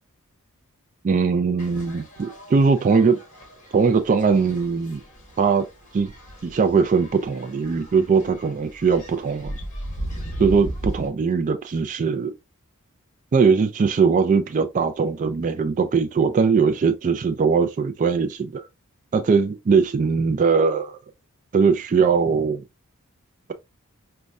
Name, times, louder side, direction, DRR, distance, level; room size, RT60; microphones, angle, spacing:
voice 1, 1.0-3.2 3.7-5.0 5.4-5.6 5.9-6.1 6.4-9.6 10.4-12.3 13.3-18.6 19.1-21.0 21.5-22.6, right 5 dB, 35° right, 0.3 m, -20 dB
sound 1, 1.6-11.1, right 1 dB, 35° left, 1.3 m, -37 dB
5.1 x 2.2 x 2.3 m
head